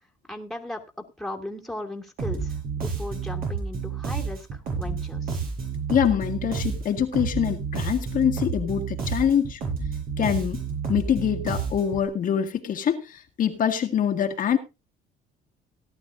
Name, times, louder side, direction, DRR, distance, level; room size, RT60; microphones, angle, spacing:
voice 1, 0.3-0.8 1.2-5.4, left 1 dB, ahead, 3 dB, 2.6 m, -37 dB
Bass guitar, 2.2-12.1, right 5 dB, 60° right, 7.9 m, -30 dB
voice 2, 5.9-9.6 10.2-10.6 10.9-14.6, left 9 dB, 55° left, 4 dB, 1.8 m, -24 dB
17.5 x 11.5 x 2.7 m, 0.27 s
cardioid pair, 110°, 17 cm